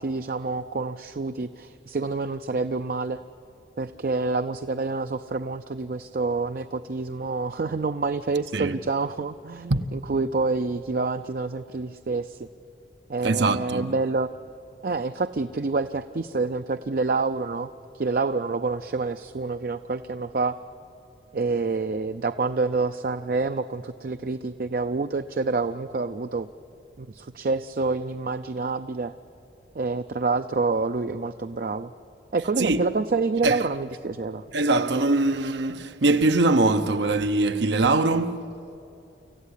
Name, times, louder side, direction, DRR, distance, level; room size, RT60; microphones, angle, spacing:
voice 1, 0.0-3.2 3.8-12.5 13.1-14.3 14.8-20.6 21.3-26.5 27.0-29.1 29.7-31.9 32.3-34.4, right 3 dB, 50° right, 0.5 m, -27 dB
voice 2, 13.2-13.9 32.6-32.8 33.4-33.6 34.5-38.6, right 2 dB, 80° right, 0.8 m, -22 dB
26.0 x 14.5 x 9.9 m
head